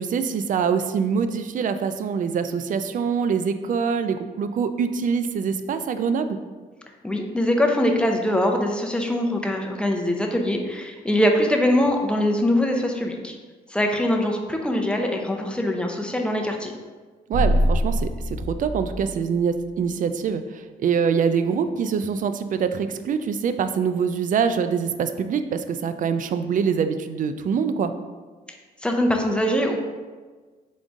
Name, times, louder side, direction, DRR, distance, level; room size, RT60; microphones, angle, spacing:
voice 1, 0.0-6.4 17.3-27.9, right 6 dB, 50° right, 10 dB, 0.4 m, -24 dB
voice 2, 7.0-13.4 13.7-16.7 28.8-29.8, left 1 dB, 5° left, 2 dB, 0.6 m, -22 dB
sound 1, 17.3-19.8, equal, 30° right, 1.1 m, -24 dB
3.8 x 3.7 x 3.5 m, 1.4 s
cardioid pair, 80°, 17 cm